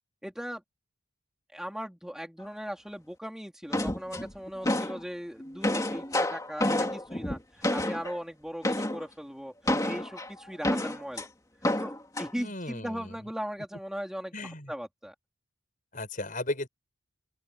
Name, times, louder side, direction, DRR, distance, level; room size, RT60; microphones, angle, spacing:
voice 1, 0.2-0.6 1.5-11.3 11.8-15.1, equal, ahead, 4.0 m, -38 dB
sound 1, 3.7-5.0 5.4-8.2 8.6-9.0 9.7-11.2 11.6-12.3, left 1 dB, 15° left, 2.6 m, -29 dB
voice 2, 12.4-13.2 14.3-14.7 15.9-16.7, left 1 dB, 40° left, 6.7 m, -35 dB
open air
head